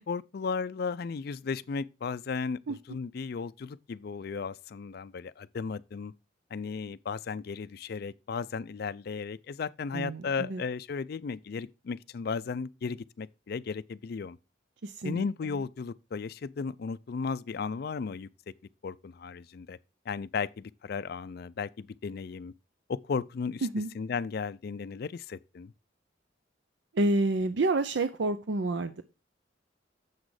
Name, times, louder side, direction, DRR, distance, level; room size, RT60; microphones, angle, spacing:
voice 1, 0.0-6.1 6.5-14.4 15.0-18.3 18.8-19.8 20.1-22.5 22.9-23.7 23.9-25.7, left 5 dB, 55° left, 0.4 m, -35 dB
voice 2, 9.9-10.6 14.8-15.2 23.6-23.9 26.9-29.0, right 2 dB, 65° right, 0.5 m, -28 dB
7.3 x 6.2 x 4.8 m
head